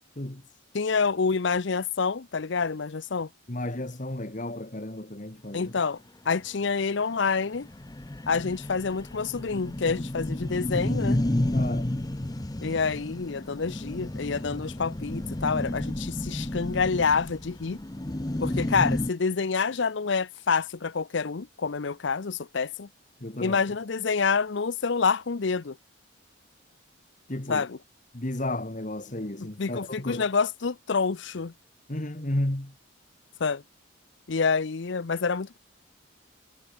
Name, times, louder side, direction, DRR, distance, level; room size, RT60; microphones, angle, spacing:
voice 1, 0.7-3.3 5.5-6.0 6.3-7.7 8.3-11.2 12.6-17.8 18.4-22.9 23.4-25.8 27.5-27.8 29.6-31.5 33.4-33.6 34.3-35.6, left 5 dB, 60° left, 0.6 m, -27 dB
voice 2, 3.5-5.7 11.5-11.9 23.2-23.6 27.3-27.6 28.1-30.2 31.9-32.7, left 1 dB, 40° left, 1.7 m, -33 dB
sound 1, 6.4-6.5 6.8-6.9 7.2-7.3 7.6-19.1, left 1 dB, 20° left, 0.7 m, -31 dB
head